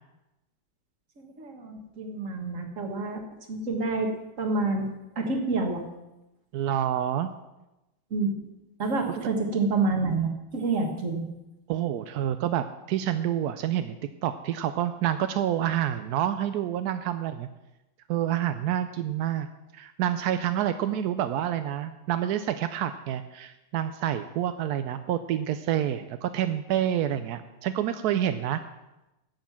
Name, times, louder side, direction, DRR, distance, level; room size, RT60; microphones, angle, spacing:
voice 1, 1.2-3.2 3.5-4.1 4.4-4.9 5.2-5.8 8.1-8.3 8.8-11.3, right 3 dB, 40° right, 4 dB, 1.8 m, -28 dB
voice 2, 6.5-7.3 9.1-9.3 11.7-14.0 14.2-17.5 18.1-19.5 19.7-28.6, right 11 dB, 75° right, 10 dB, 0.9 m, -28 dB
10.5 x 7.5 x 7.2 m, 0.97 s
omnidirectional pair, 2.2 m